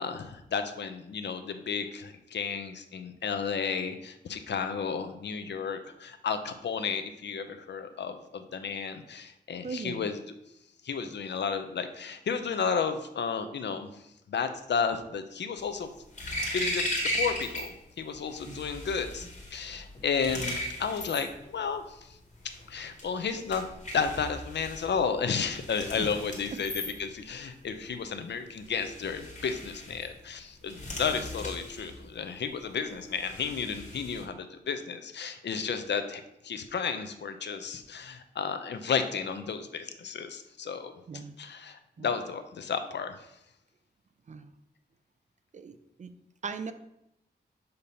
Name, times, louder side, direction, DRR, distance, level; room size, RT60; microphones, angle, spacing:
voice 1, 0.0-10.2 10.8-14.0 14.3-15.9 16.2-16.9 17.1-17.7 18.0-22.2 22.7-26.7 27.0-40.9 41.4-43.3, left 6 dB, 85° left, 8 dB, 0.6 m, -33 dB
voice 2, 9.6-10.0 18.5-18.6 26.0-26.1 26.5-26.6 31.1-31.3 41.1-41.4 42.0-42.1 44.3-44.5 45.5-46.1 46.4-46.7, right 5 dB, 45° right, 10 dB, 0.4 m, -39 dB
sound 1, 15.6-17.7 18.0-34.2, left 1 dB, 45° left, 1.5 m, -38 dB
6.6 x 2.8 x 5.3 m, 0.82 s
wide cardioid pair, 145°, 18 cm